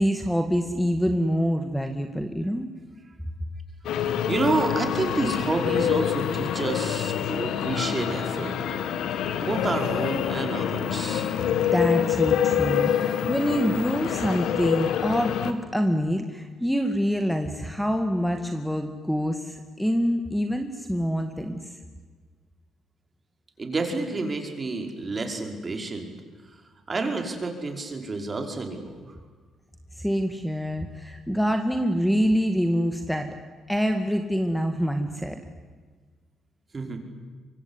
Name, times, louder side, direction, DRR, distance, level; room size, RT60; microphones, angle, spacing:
voice 1, 0.0-2.7 11.7-21.7 29.9-33.3 33.7-35.4, equal, ahead, 6 dB, 2.1 m, -26 dB
sound 1, 3.9-15.5, left 9 dB, 80° left, 2.0 m, -26 dB
voice 2, 4.3-8.6 9.4-11.3 23.6-26.1 26.9-29.1 36.7-37.0, right 3 dB, 35° right, 4 dB, 5.4 m, -29 dB
24.5 x 23.0 x 9.9 m, 1.5 s
cardioid pair, 90°, 0 cm